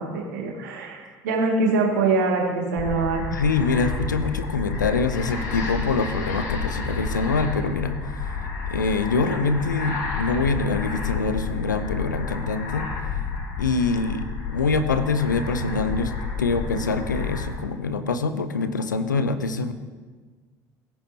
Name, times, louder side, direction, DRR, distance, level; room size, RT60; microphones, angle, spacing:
voice 1, 0.0-3.2, right 3 dB, 75° right, 0 dB, 2.3 m, -24 dB
sound 1, 2.8-17.5, left 4 dB, 70° left, 2.1 m, -30 dB
voice 2, 3.3-8.3 8.7-12.9 13.6-19.7, left 4 dB, 85° left, 11 dB, 0.7 m, -25 dB
17.5 x 10.0 x 3.0 m, 1.4 s
figure-of-eight pair, 65°, 10 cm